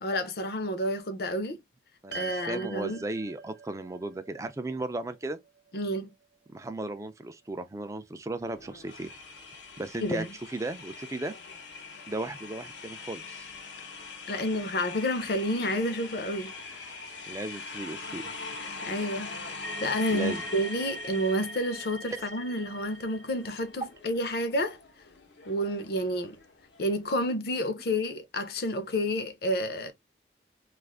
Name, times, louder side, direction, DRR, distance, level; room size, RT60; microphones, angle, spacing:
voice 1, 0.0-1.6 2.1-3.0 5.7-6.1 10.0-10.3 14.3-16.5 18.9-19.3 19.6-24.8 25.5-26.4 26.8-29.9, equal, 60° left, 0.6 m, -30 dB
voice 2, 2.0-5.4 6.5-9.1 9.8-11.3 12.1-13.5 17.3-18.2 20.1-20.4, right 2 dB, 15° right, 0.3 m, -36 dB
sound 1, 2.1-6.6, right 6 dB, 80° right, 0.6 m, -45 dB
sound 2, 8.4-21.9 22.2-27.1, left 4 dB, 90° left, 0.8 m, -43 dB
sound 3, 19.6-23.9, right 1 dB, 40° right, 0.7 m, -41 dB
2.5 x 2.4 x 3.3 m
head